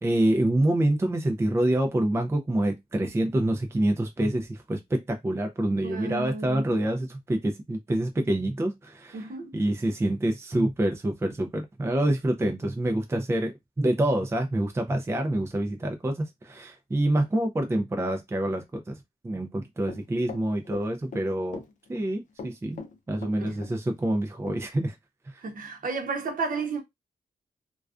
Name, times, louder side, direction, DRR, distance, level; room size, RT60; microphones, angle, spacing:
voice 1, 0.0-9.3 9.5-19.0 19.2-21.6 21.9-22.8 23.1-24.9, right 1 dB, 15° right, 0.4 m, -26 dB
voice 2, 5.8-6.8 9.1-9.5 23.4-23.7 25.4-26.8, right 4 dB, 60° right, 0.8 m, -32 dB
Run, 19.9-21.2 21.5-22.1 22.4-23.7 24.0-24.1 24.5-24.6, left 4 dB, 55° left, 0.5 m, -41 dB
2.3 x 2.2 x 2.4 m
cardioid pair, 80°, 16 cm